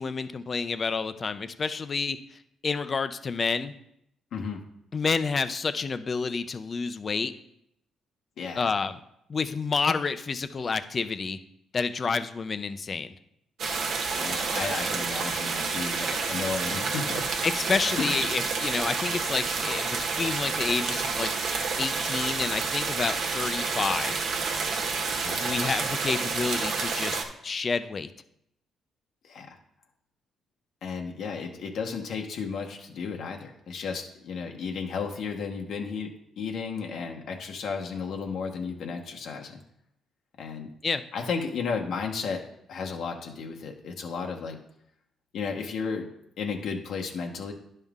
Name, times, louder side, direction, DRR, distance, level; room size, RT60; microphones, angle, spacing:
voice 1, 0.0-2.2 2.6-3.7 4.9-7.3 8.6-9.0 9.3-11.4 11.7-13.1 17.4-24.2 25.4-28.1 40.8-41.0, left 4 dB, 40° left, 12 dB, 0.6 m, -29 dB
voice 2, 4.3-4.6 8.4-8.7 14.2-17.3 18.0-18.2 25.1-25.6 29.2-29.6 30.8-39.6 40.4-40.7 41.1-42.4 42.7-44.6 45.3-46.1 46.4-47.5, left 5 dB, 70° left, 2 dB, 1.0 m, -33 dB
sound 1, 13.6-27.2, right 4 dB, 70° right, 1.2 m, -29 dB
10.5 x 5.6 x 3.6 m, 0.77 s
cardioid pair, 90°, 0 cm